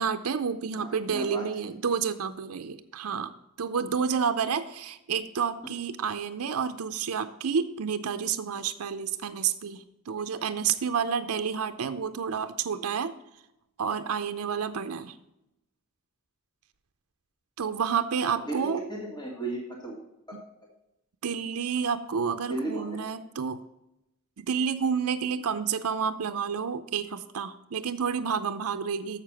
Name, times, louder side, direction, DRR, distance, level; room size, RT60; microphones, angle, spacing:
voice 1, 0.0-13.1 13.8-15.2 17.6-18.8 20.3-20.4 21.2-23.6 24.4-29.2, right 6 dB, 85° right, 9 dB, 0.6 m, -30 dB
voice 2, 0.8-1.5 18.2-20.0 22.5-23.0, right 2 dB, 20° left, -2 dB, 1.7 m, -35 dB
7.3 x 6.7 x 6.0 m, 0.86 s
head